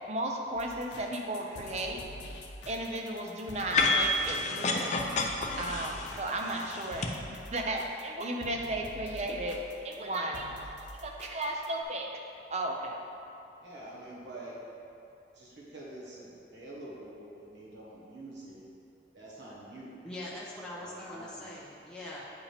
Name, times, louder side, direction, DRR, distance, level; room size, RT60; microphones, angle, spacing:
voice 1, 0.1-2.0 2.7-5.1 5.6-12.1 12.5-13.0, right 1 dB, 40° right, 1 dB, 0.6 m, -35 dB
sound 1, 0.5-11.8, left 1 dB, 80° left, 0.7 m, -47 dB
sound 2, 3.7-7.1, left 2 dB, 40° left, 0.5 m, -29 dB
voice 2, 13.6-14.6 15.3-18.6 19.1-20.0 20.8-21.5, right 1 dB, 90° right, -6 dB, 1.4 m, -46 dB
voice 3, 20.0-22.2, left 1 dB, 5° left, -7 dB, 0.8 m, -42 dB
8.5 x 4.7 x 3.5 m, 2.7 s
head